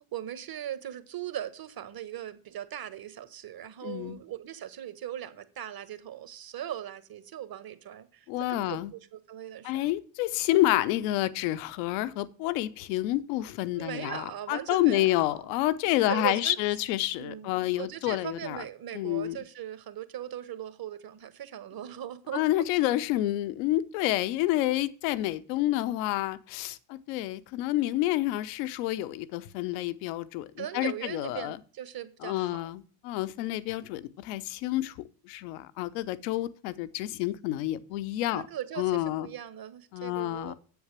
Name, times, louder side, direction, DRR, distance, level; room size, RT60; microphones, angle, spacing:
voice 1, 0.1-9.9 13.8-15.5 16.0-16.6 17.2-22.6 30.6-32.6 33.4-33.8 38.3-40.5, right 11 dB, 45° right, 1.5 m, -39 dB
voice 2, 3.8-4.2 8.3-8.9 9.6-18.6 18.9-19.4 22.3-31.6 32.2-34.9 35.3-38.5 38.8-39.3 39.9-40.5, left 15 dB, 75° left, 0.9 m, -29 dB
7.9 x 7.1 x 7.4 m
hypercardioid pair, 55°, 50 cm